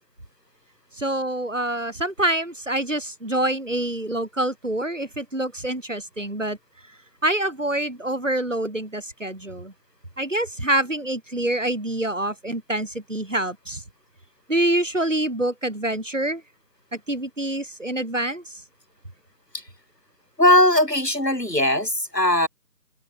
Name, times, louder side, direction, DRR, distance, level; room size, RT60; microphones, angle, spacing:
voice 1, 0.9-6.6 7.2-9.7 10.2-13.8 14.5-16.4 16.9-18.6, right 1 dB, 50° right, 7.6 m, -26 dB
voice 2, 20.4-22.5, left 1 dB, 90° left, 6.7 m, -19 dB
open air
figure-of-eight pair, 175°, 47 cm